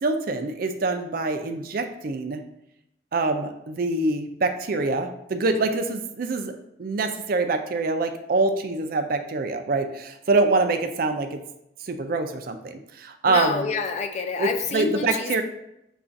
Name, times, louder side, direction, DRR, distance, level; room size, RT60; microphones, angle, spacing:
voice 1, 0.0-2.4 3.1-6.5 6.8-11.4 11.9-13.7 14.4-15.4, right 3 dB, 50° right, 7 dB, 0.4 m, -25 dB
voice 2, 13.3-15.4, left 4 dB, 40° left, 5 dB, 0.4 m, -28 dB
6.8 x 2.4 x 2.5 m, 0.82 s
head